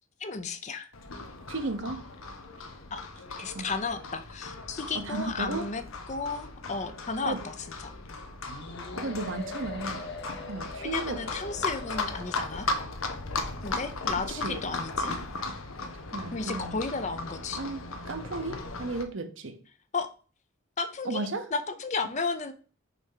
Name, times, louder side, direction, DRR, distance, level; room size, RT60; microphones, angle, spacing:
voice 1, 0.2-0.9 2.9-3.0 3.4-5.8 6.1-7.5 7.8-7.9 10.8-12.7 13.6-15.2 16.3-17.6 19.9-20.1 20.8-22.5, left 4 dB, 35° left, 9 dB, 0.6 m, -33 dB
Livestock farm animals working animals, 0.9-19.0, left 3 dB, 90° left, 1.0 m, -37 dB
voice 2, 1.5-2.0 3.5-3.7 4.9-5.7 7.2-7.4 9.0-10.1 10.5-11.2 14.3-14.6 16.1-16.7 17.6-19.6 21.0-21.5, right 3 dB, 70° right, 7 dB, 1.0 m, -34 dB
sound 1, 8.5-12.6, left 3 dB, 55° left, 1.1 m, -42 dB
6.0 x 3.5 x 5.7 m, 0.38 s
head